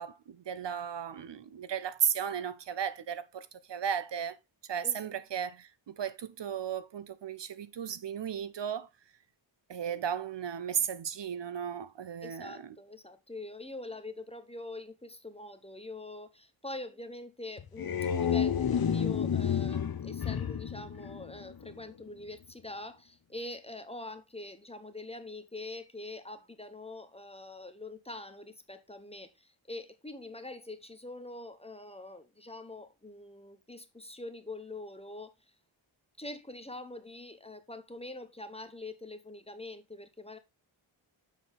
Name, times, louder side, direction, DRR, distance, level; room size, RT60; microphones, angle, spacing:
voice 1, 0.0-4.4 4.7-8.9 9.7-12.5, right 8 dB, 60° right, 0.7 m, -35 dB
voice 2, 12.2-35.3 36.2-40.4, left 2 dB, 10° left, 0.8 m, -44 dB
sound 1, 17.6-21.8, left 8 dB, 50° left, 0.8 m, -30 dB
7.3 x 6.2 x 3.4 m
wide cardioid pair, 175°, 48 cm